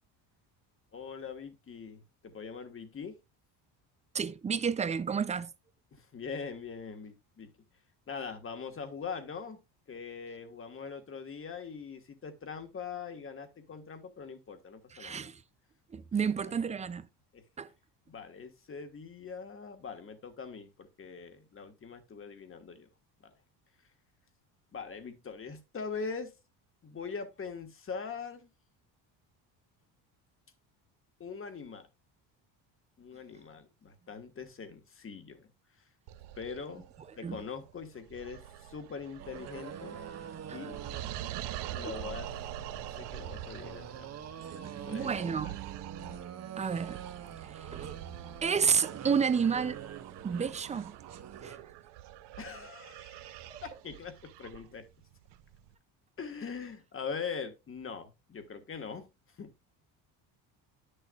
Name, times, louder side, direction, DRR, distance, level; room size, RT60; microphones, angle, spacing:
voice 1, 0.9-3.2 5.9-7.5 8.1-9.6 9.9-15.3 16.4-16.7 17.3-17.4 18.1-22.9 23.2-23.3 24.7-26.3 26.8-28.5 31.2-31.9 33.0-35.5 36.4-36.9 37.2-40.0 40.5-40.8 41.7-42.3 42.9-44.1 44.6-45.1 52.4-54.9 56.2-59.1 59.4-59.5, left 5 dB, 30° left, 1.4 m, -42 dB
voice 2, 4.1-5.5 14.9-15.4 15.9-17.1 17.6-17.7 37.2-37.4 40.5-40.6 44.6-45.5 46.6-47.0 47.5-47.9 48.4-49.8 50.2-51.0 51.4-51.6 53.5-53.6, right 6 dB, 20° right, 0.3 m, -31 dB
sound 1, 36.1-55.7, right 12 dB, 70° right, 0.7 m, -45 dB
sound 2, 39.2-51.6, right 8 dB, 35° right, 0.9 m, -45 dB
10.0 x 6.6 x 2.3 m
cardioid pair, 115°, 43 cm